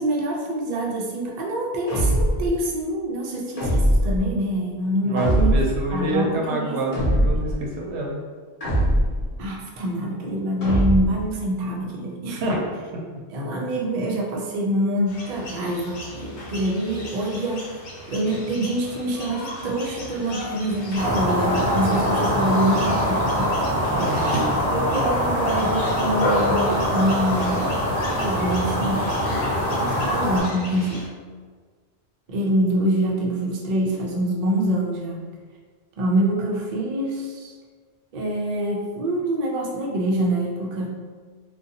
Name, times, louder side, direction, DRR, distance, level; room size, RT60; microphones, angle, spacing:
voice 1, 0.0-5.6 5.9-6.8 7.1-7.2 9.4-12.4 13.3-17.7 18.1-23.7 24.0-24.4 24.7-27.7 28.2-29.2 29.5-31.0 32.3-35.2 36.0-37.5 38.1-41.0, right 1 dB, 55° right, -2 dB, 0.5 m, -25 dB
sound 1, 1.9-2.5 3.6-4.2 5.2-5.8 6.9-7.6 8.6-9.3 10.6-11.3, right 1 dB, 40° left, 0.8 m, -21 dB
voice 2, 5.0-8.2 12.3-12.8 23.9-24.4, right 1 dB, 85° right, -1 dB, 0.9 m, -27 dB
sound 2, 15.1-31.1, left 1 dB, 85° left, 0.9 m, -34 dB
sound 3, 21.0-30.4, equal, 15° right, 1.1 m, -23 dB
2.5 x 2.2 x 2.7 m, 1.5 s
omnidirectional pair, 1.1 m